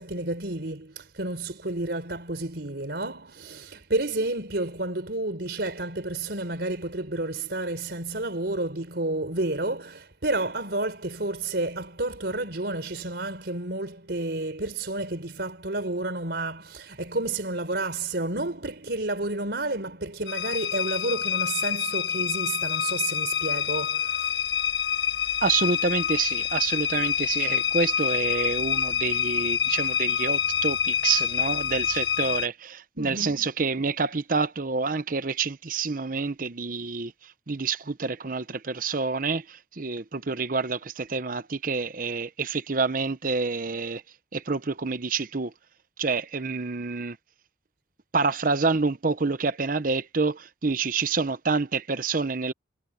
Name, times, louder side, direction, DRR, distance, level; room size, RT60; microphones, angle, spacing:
voice 1, 0.0-24.4 32.9-33.5, right 2 dB, 65° right, 4.2 m, -30 dB
sound 1, 20.3-32.5, left 8 dB, 80° left, 1.4 m, -27 dB
voice 2, 25.4-37.1 37.5-44.0 44.3-45.5 46.0-47.2 48.1-52.5, right 4 dB, 50° right, 0.9 m, -27 dB
head